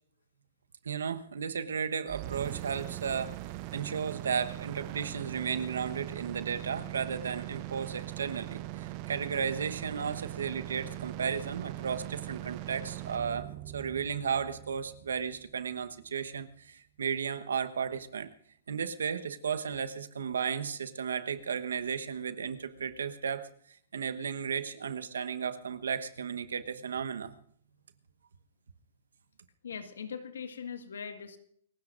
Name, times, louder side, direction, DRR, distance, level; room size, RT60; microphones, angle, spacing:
voice 1, 0.8-3.4 3.7-13.5 13.7-18.3 18.7-23.5 23.9-27.3, right 6 dB, 80° right, 10 dB, 1.1 m, -34 dB
sound 1, 2.1-16.0, right 16 dB, 40° right, 0.6 m, -41 dB
voice 2, 29.6-31.4, left 6 dB, 80° left, 7 dB, 1.7 m, -40 dB
29.0 x 16.5 x 2.6 m, 0.62 s
hypercardioid pair, 125°, 0 cm